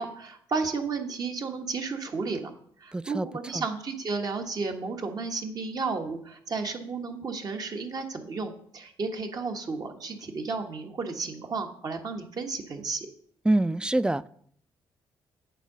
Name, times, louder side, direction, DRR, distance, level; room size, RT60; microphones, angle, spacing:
voice 1, 0.0-2.5 2.8-13.1, right 4 dB, 50° right, 1.2 m, -33 dB
voice 2, 2.9-3.3 3.5-3.6 13.5-14.3, right 1 dB, 10° right, 0.3 m, -25 dB
8.3 x 3.8 x 5.5 m
supercardioid pair, 65°, 9 cm